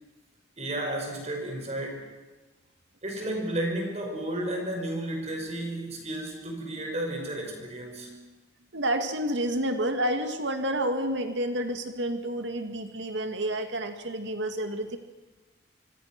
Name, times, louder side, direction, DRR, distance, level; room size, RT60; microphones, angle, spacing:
voice 1, 0.6-2.1 3.0-8.2, right 1 dB, 35° right, 2 dB, 5.3 m, -32 dB
voice 2, 8.7-15.0, right 1 dB, 70° right, 6 dB, 2.3 m, -29 dB
26.0 x 25.0 x 6.1 m, 1.2 s
head